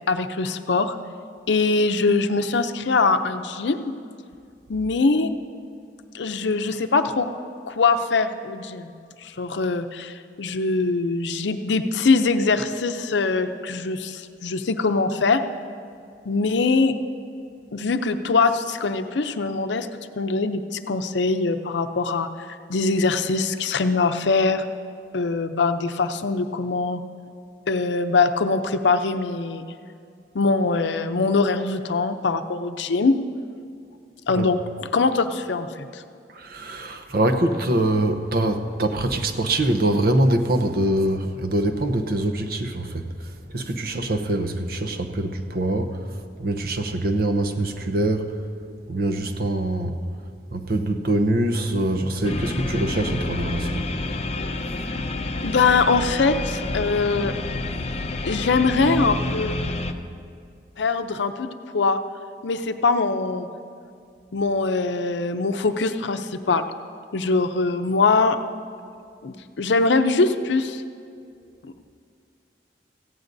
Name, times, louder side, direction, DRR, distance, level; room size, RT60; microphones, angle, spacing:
voice 1, 0.1-1.0 1.5-3.9 4.7-5.3 6.1-7.3 7.7-8.9 9.2-15.4 16.3-16.9 17.7-19.9 20.2-24.6 25.1-27.0 27.7-29.6 30.3-33.2 34.3-36.0 55.4-57.3 58.2-59.6 60.8-62.0 62.4-63.5 64.3-66.7 67.1-68.4 69.2-70.8 71.6-71.7, left 4 dB, 80° left, 9 dB, 0.6 m, -22 dB
voice 2, 36.3-46.0 46.4-48.3 48.9-50.0 50.5-53.8, right 1 dB, 55° right, 7 dB, 0.8 m, -24 dB
sound 1, 52.2-59.9, left 2 dB, 35° left, 0.6 m, -29 dB
17.5 x 15.5 x 2.7 m, 2.3 s
head